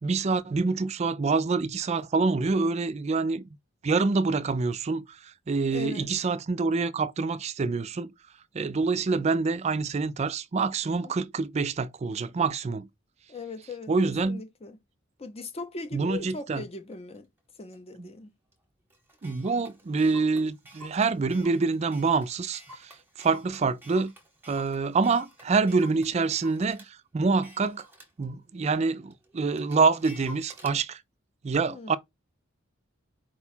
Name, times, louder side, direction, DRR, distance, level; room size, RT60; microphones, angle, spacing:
voice 1, 0.0-3.5 3.8-8.1 8.5-12.9 13.9-14.4 15.9-16.6 18.0-18.1 19.2-22.9 23.2-24.1 24.5-27.9 28.2-31.0 31.4-32.0, right 4 dB, 35° right, 0.4 m, -26 dB
voice 2, 5.7-6.1 11.0-11.3 13.3-14.8 15.2-17.3 17.6-18.3 31.6-32.0, left 3 dB, 30° left, 0.6 m, -39 dB
Clock, 16.3-16.4 16.9-17.2 17.7-17.8 18.1-18.2 18.5-18.6 18.9-26.9 27.3-30.8, equal, 10° right, 0.9 m, -50 dB
4.6 x 2.3 x 4.2 m
head